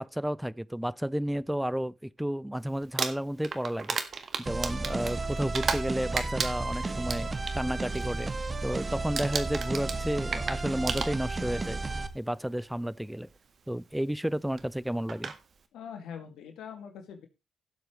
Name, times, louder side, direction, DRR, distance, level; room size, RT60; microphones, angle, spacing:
voice 1, 0.0-4.0 4.4-8.3 8.6-11.8 12.1-13.3 13.7-15.3, equal, 5° right, 0.5 m, -32 dB
Crumpling crinkling, 2.8-5.9 6.2-7.6 7.9-8.3 8.5-8.8 9.2-11.5 12.5-12.6 14.6-14.7 15.1-15.4, right 5 dB, 50° right, 1.7 m, -33 dB
sound 1, 4.5-12.1, right 3 dB, 35° right, 1.5 m, -33 dB
voice 2, 15.7-17.3, left 7 dB, 70° left, 2.2 m, -43 dB
16.5 x 7.8 x 3.1 m
hypercardioid pair, 45°, 0 cm